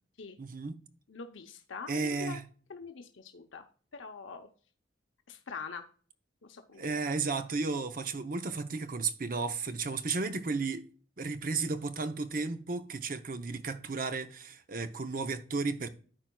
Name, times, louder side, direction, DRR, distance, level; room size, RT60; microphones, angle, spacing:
voice 1, 0.4-0.8 1.9-2.4 6.7-10.9 11.2-15.9, right 4 dB, 45° right, 0.7 m, -33 dB
voice 2, 1.1-2.4 2.7-3.6 3.9-4.5 5.3-5.8 6.4-7.1, left 5 dB, 90° left, 0.7 m, -44 dB
13.5 x 4.5 x 2.2 m
head